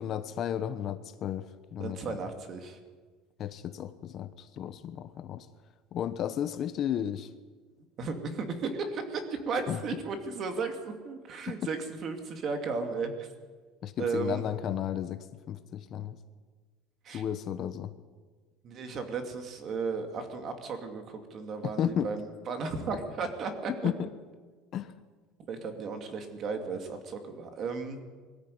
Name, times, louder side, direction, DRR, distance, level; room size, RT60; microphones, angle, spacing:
voice 1, 0.0-2.2 3.4-5.5 5.9-7.3 9.7-9.8 11.5-11.6 13.8-16.2 17.1-17.9 21.6-22.1 23.8-24.1 24.7-25.0, left 9 dB, 35° left, 11 dB, 0.9 m, -33 dB
voice 2, 1.8-2.8 8.0-13.3 14.0-14.4 17.0-17.2 18.6-23.9 25.5-28.0, right 4 dB, 35° right, 6 dB, 2.6 m, -35 dB
22.0 x 14.0 x 9.4 m, 1.4 s
cardioid pair, 165°, 0 cm